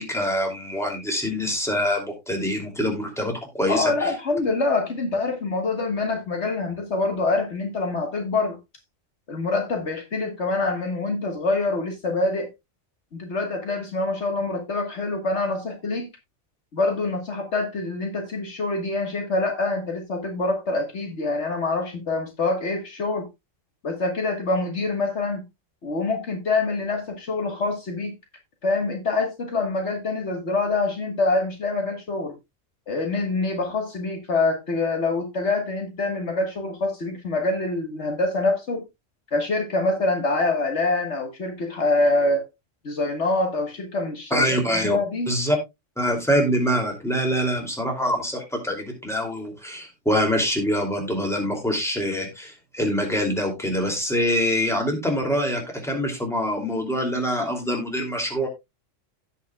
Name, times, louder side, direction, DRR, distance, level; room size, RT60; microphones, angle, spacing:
voice 1, 0.0-4.1 44.3-45.0 45.3-45.6 46.0-58.5, equal, ahead, 2.7 m, -25 dB
voice 2, 3.7-8.6 9.3-12.5 13.2-16.1 16.7-23.3 23.8-25.4 25.8-28.1 28.6-32.3 32.9-38.8 39.3-42.5 42.8-44.5 44.7-45.3, left 3 dB, 65° left, 1.8 m, -25 dB
16.5 x 5.7 x 2.3 m
omnidirectional pair, 1.3 m